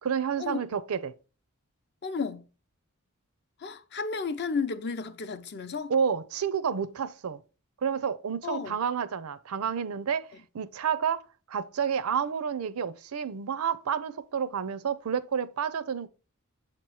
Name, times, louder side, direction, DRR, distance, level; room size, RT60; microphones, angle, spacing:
voice 1, 0.0-1.1 5.9-7.4 7.8-10.3 10.5-11.2 11.5-16.1, right 7 dB, 80° right, 0.5 m, -30 dB
voice 2, 2.0-2.5 3.6-5.9 8.4-8.8, left 5 dB, 50° left, 0.6 m, -33 dB
7.4 x 3.0 x 4.7 m
head